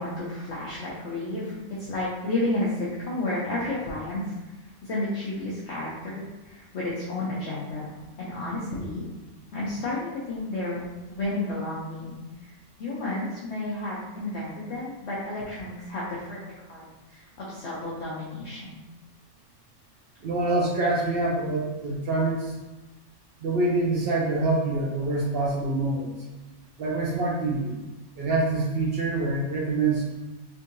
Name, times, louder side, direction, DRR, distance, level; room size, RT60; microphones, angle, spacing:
voice 1, 0.0-4.3 4.8-9.0 9.5-10.8 11.1-12.5 12.8-16.4 16.7-18.8, left 2 dB, 60° left, -7 dB, 0.9 m, -32 dB
voice 2, 20.2-22.5 23.4-26.1 26.8-27.8 28.2-30.3, right 2 dB, 65° right, -2 dB, 0.6 m, -26 dB
3.6 x 2.6 x 2.6 m, 1.1 s
omnidirectional pair, 1.4 m